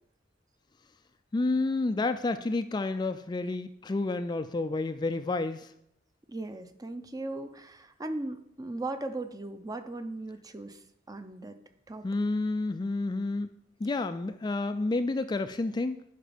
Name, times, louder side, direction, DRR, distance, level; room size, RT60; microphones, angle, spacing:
voice 1, 1.3-5.7 12.0-13.5 13.8-16.0, left 2 dB, 25° left, 9 dB, 0.3 m, -30 dB
voice 2, 6.3-10.8 11.1-11.6 11.9-12.1, right 2 dB, 20° right, 9 dB, 0.6 m, -38 dB
11.0 x 5.1 x 5.0 m, 0.76 s
head